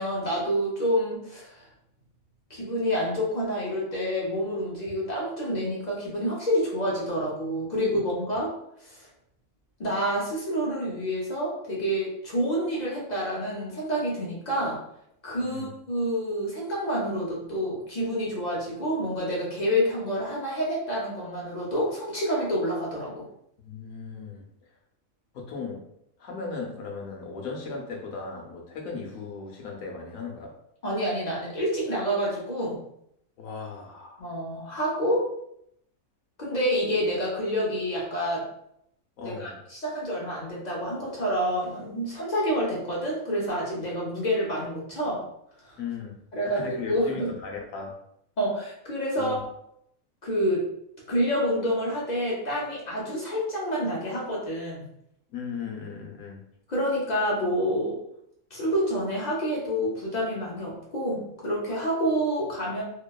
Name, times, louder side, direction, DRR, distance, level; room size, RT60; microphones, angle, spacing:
voice 1, 0.0-1.7 2.5-8.5 8.8-9.1 9.8-14.8 15.2-23.2 30.8-32.8 34.2-35.2 36.4-38.4 39.2-45.2 45.6-45.8 46.3-47.3 48.4-49.4 50.2-50.7 51.1-54.9 56.7-58.0 58.5-62.8, equal, 50° left, -5 dB, 0.5 m, -28 dB
voice 2, 15.4-15.7 23.6-24.4 25.3-25.8 26.2-30.5 33.4-34.2 39.2-39.6 45.8-46.1 46.4-47.9 49.2-49.4 55.3-56.4, left 5 dB, 75° left, 0 dB, 1.0 m, -37 dB
2.9 x 2.1 x 2.2 m, 0.75 s
omnidirectional pair, 1.5 m